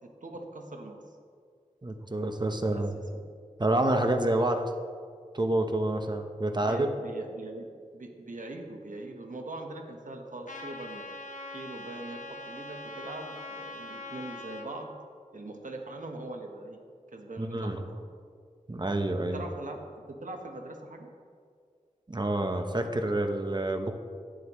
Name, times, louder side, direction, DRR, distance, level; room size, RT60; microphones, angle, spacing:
voice 1, 0.0-1.0 2.7-2.8 3.1-3.2 6.6-7.7 7.9-11.0 11.5-15.0 15.3-16.8 17.1-18.0 19.3-21.1, right 2 dB, 75° right, 3 dB, 1.2 m, -41 dB
voice 2, 1.8-3.0 3.6-4.7 5.3-6.9 17.4-17.8 18.7-19.4 22.1-23.9, right 1 dB, 35° right, 5 dB, 0.9 m, -28 dB
Trumpet, 10.5-14.7, left 2 dB, 70° left, 1.1 m, -42 dB
11.5 x 9.6 x 3.1 m, 2.1 s
wide cardioid pair, 60°, 14 cm